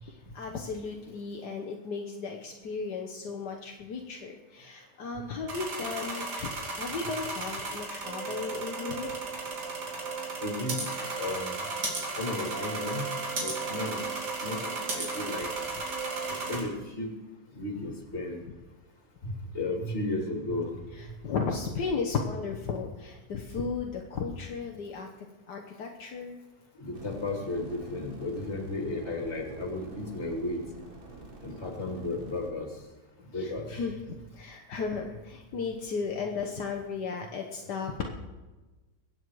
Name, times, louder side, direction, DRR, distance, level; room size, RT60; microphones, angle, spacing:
voice 1, 0.0-9.1 21.0-25.1 25.5-26.4 33.3-38.1, left 5 dB, 70° left, 2 dB, 1.7 m, -35 dB
sound 1, 5.5-16.6, right 2 dB, 70° right, 3.4 m, -36 dB
sound 2, 8.0-16.6, right 7 dB, 55° right, 1.1 m, -39 dB
voice 2, 10.4-10.8 11.2-11.7 12.2-13.1 13.3-14.0 14.4-15.5 16.2-17.1 17.5-18.4 19.3-20.7 26.8-30.6 31.4-32.7 33.3-33.7, left 2 dB, 40° left, 2 dB, 2.8 m, -34 dB
sound 3, 26.9-32.5, right 3 dB, 35° right, 1.6 m, -47 dB
22.5 x 8.6 x 4.7 m, 1.2 s
omnidirectional pair, 1.8 m